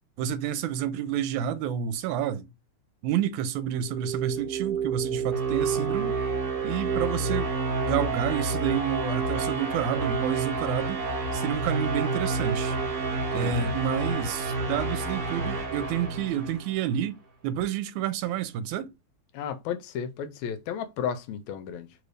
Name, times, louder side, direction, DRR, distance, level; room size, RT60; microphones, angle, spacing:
voice 1, 0.2-2.5 3.0-6.2 6.6-11.0 11.3-12.8 13.3-18.9, right 9 dB, 85° right, 2.0 m, -29 dB
sound 1, 3.7-16.9, right 4 dB, 60° right, 1.6 m, -29 dB
voice 2, 13.1-13.7 19.3-21.9, left 8 dB, 80° left, 1.8 m, -34 dB
4.5 x 2.5 x 3.1 m
omnidirectional pair, 3.4 m